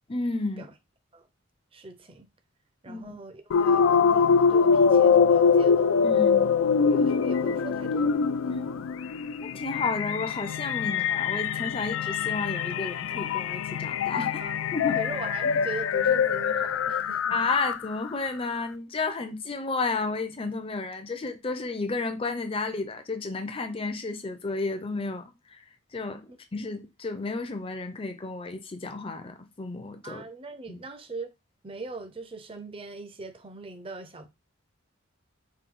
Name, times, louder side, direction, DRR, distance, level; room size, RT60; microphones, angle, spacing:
voice 1, 0.1-0.7 2.9-3.2 6.0-6.6 8.5-8.6 9.4-14.4 14.7-15.0 17.3-25.6 25.9-30.2 30.7-30.8, left 3 dB, 25° left, 0.5 m, -32 dB
voice 2, 1.7-2.3 2.8-5.9 6.8-8.1 8.4-8.9 14.4-14.6 14.9-17.4 26.3-26.4 30.0-31.3 31.6-34.3, right 3 dB, 25° right, 0.5 m, -40 dB
sound 1, 3.5-18.1, left 6 dB, 80° left, 0.3 m, -24 dB
4.5 x 2.2 x 3.8 m
head